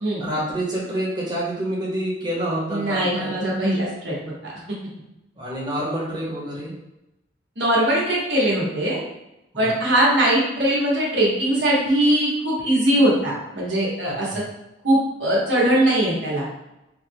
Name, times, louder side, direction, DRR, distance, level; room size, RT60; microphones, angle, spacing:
voice 1, 0.2-3.3 5.4-6.7 9.5-9.7 14.0-14.4, right 1 dB, 25° right, -6 dB, 1.0 m, -27 dB
voice 2, 2.7-4.1 4.4-4.5 7.6-9.0 9.6-14.4 14.8-16.4, right 1 dB, 80° right, -4 dB, 1.1 m, -21 dB
3.5 x 2.2 x 3.4 m, 0.92 s
head